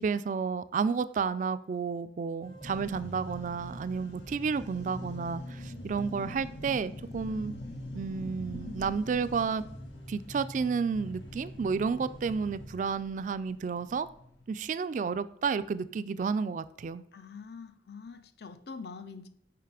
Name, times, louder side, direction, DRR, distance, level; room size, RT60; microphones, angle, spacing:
voice 1, 0.0-7.5 7.9-9.6 10.1-14.1 14.5-17.0, right 5 dB, 45° right, 0.3 m, -31 dB
sound 1, 2.4-12.8, left 1 dB, 30° left, 1.0 m, -45 dB
sound 2, 2.6-14.5, left 1 dB, 85° left, 1.0 m, -47 dB
voice 2, 17.1-19.3, left 5 dB, 60° left, 0.6 m, -44 dB
5.8 x 5.1 x 4.8 m
head